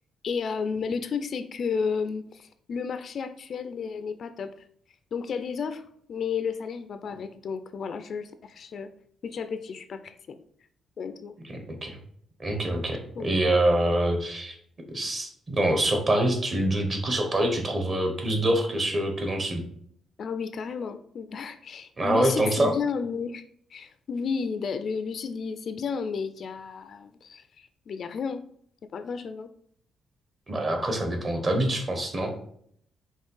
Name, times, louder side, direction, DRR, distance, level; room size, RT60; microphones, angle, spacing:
voice 1, 0.2-4.5 5.1-8.9 9.2-10.4 11.0-11.3 13.1-13.3 20.2-23.4 23.7-28.4 28.9-29.5, left 5 dB, 45° left, 9 dB, 0.5 m, -32 dB
voice 2, 12.4-14.6 14.9-19.6 22.0-22.7 30.5-32.3, right 1 dB, 30° right, 4 dB, 1.2 m, -25 dB
5.4 x 3.2 x 5.5 m, 0.65 s
cardioid pair, 155°, 0 cm